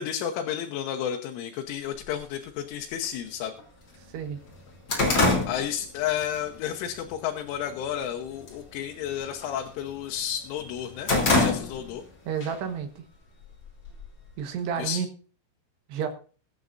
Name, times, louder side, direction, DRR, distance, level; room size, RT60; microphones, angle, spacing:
voice 1, 0.0-3.5 5.5-12.0 14.8-15.0, left 9 dB, 85° left, 3 dB, 3.5 m, -32 dB
sound 1, 2.0-2.1 3.0-3.1 3.6-3.7 4.0-6.4 6.8-7.1 7.6-8.1 8.3-8.7 9.0-10.2 10.6-12.1 12.4-12.5 13.4-14.3, left 2 dB, 25° left, 3.4 m, -25 dB
voice 2, 12.3-13.0 14.4-15.1 15.9-16.1, right 7 dB, 70° right, 6 dB, 3.2 m, -30 dB
22.5 x 9.3 x 2.6 m, 0.38 s
omnidirectional pair, 5.5 m